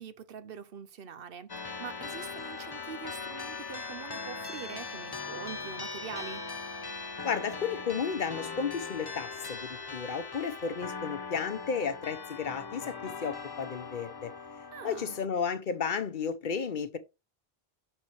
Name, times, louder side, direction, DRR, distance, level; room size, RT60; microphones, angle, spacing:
voice 1, 0.0-6.5 14.7-15.2, right 7 dB, 65° right, 0.9 m, -44 dB
sound 1, 1.5-15.2, left 4 dB, 30° left, 0.6 m, -40 dB
voice 2, 7.2-14.3 14.8-17.0, left 6 dB, 55° left, 0.9 m, -33 dB
6.5 x 4.4 x 4.6 m
omnidirectional pair, 1.0 m